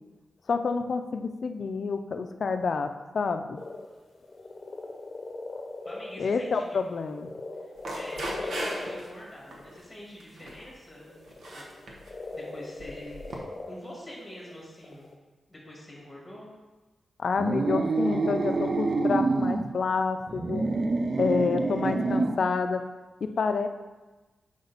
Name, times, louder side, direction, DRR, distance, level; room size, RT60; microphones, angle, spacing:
voice 1, 0.5-3.6 6.2-7.3 17.2-20.6 21.2-22.8 23.2-23.7, left 4 dB, 50° left, 7 dB, 0.4 m, -28 dB
sound 1, 3.6-9.9 11.0-15.1, left 2 dB, 35° left, 0.8 m, -39 dB
voice 2, 5.8-6.8 7.9-11.2 11.5-11.7 12.3-13.3 13.7-15.1 15.5-16.5, left 1 dB, 10° left, -4 dB, 1.7 m, -45 dB
sound 2, 7.8-9.1 9.5-9.8 10.2-10.7 11.3-12.1 12.8-13.4, right 1 dB, 70° right, 1.1 m, -38 dB
sound 3, 17.4-19.7 20.3-22.5, right 3 dB, 35° right, 0.3 m, -27 dB
6.7 x 5.0 x 4.0 m, 1.2 s
wide cardioid pair, 180°, 0 cm